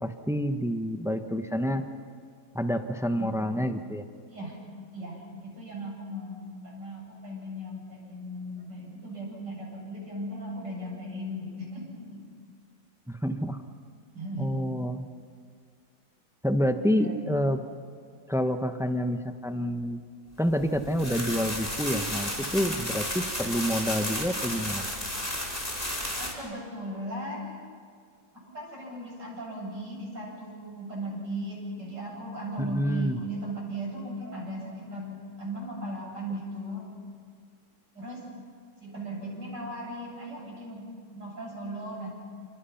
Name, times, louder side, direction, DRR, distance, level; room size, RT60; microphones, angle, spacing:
voice 1, 0.0-1.8 2.5-4.1 13.1-13.6 14.4-15.1 16.4-17.6 18.3-20.0 20.4-24.8 32.6-33.2, equal, 5° right, 7 dB, 0.4 m, -28 dB
voice 2, 4.3-4.6 4.9-12.2 14.1-14.7 16.9-17.4 26.2-27.7 28.3-36.9 38.0-38.2 38.8-42.1, right 1 dB, 60° right, -3 dB, 8.5 m, -37 dB
sound 1, 20.6-26.3, left 1 dB, 20° left, 5.3 m, -33 dB
28.0 x 28.0 x 5.8 m, 2.1 s
omnidirectional pair, 2.1 m